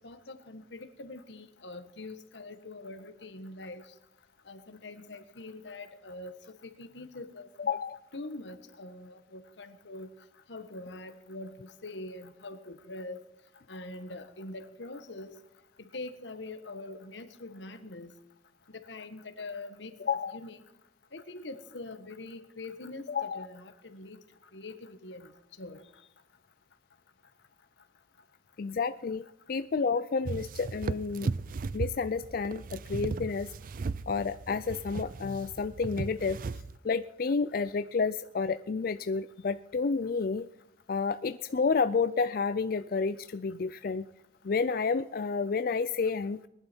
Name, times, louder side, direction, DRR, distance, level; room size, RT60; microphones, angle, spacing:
voice 1, 0.0-3.8 4.5-6.3 6.6-7.5 8.1-10.1 10.5-11.5 11.8-13.2 13.7-15.4 15.9-18.1 18.9-20.6 21.1-24.2 24.5-25.3 25.6-25.8, left 2 dB, 90° left, 1.4 m, -43 dB
voice 2, 7.6-8.0 20.0-20.4 23.1-23.5 28.6-31.3 31.7-33.5 34.1-36.4 36.8-40.5 40.9-44.0 44.4-46.5, left 5 dB, 55° left, 0.4 m, -30 dB
sound 1, 30.2-36.8, right 4 dB, 50° right, 0.4 m, -36 dB
20.5 x 11.5 x 4.5 m
head